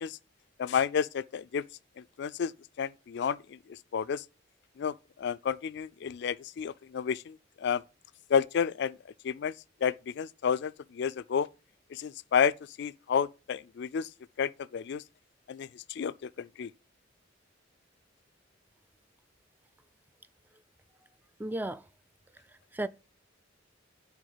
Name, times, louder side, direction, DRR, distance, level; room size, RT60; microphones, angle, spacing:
voice 1, 0.6-1.6 2.0-2.5 2.8-4.2 4.8-7.8 8.3-9.0 9.2-9.5 9.8-11.5 11.9-12.5 12.8-14.1 14.4-15.0 15.5-16.7, left 7 dB, 60° left, 0.4 m, -31 dB
voice 2, 21.4-21.9 22.3-22.9, right 1 dB, 10° right, 0.4 m, -35 dB
10.5 x 3.6 x 6.6 m
head